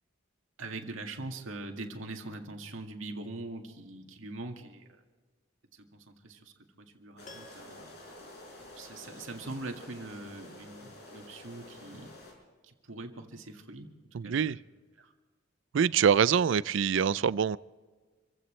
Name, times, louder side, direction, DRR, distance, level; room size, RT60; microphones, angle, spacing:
voice 1, 0.6-4.9 5.7-6.5 6.8-7.9 8.8-12.1 12.6-13.9 14.2-14.6 15.0-15.1, right 2 dB, 90° right, 3 dB, 2.0 m, -42 dB
sound 1, 7.2-12.3, left 1 dB, 55° left, 5.5 m, -50 dB
Piano, 7.2-9.3 9.6-9.7, left 2 dB, 40° left, 1.9 m, -56 dB
voice 2, 14.1-14.6 15.7-17.6, right 7 dB, 70° right, 19 dB, 0.4 m, -25 dB
27.5 x 16.0 x 3.2 m, 1.4 s
head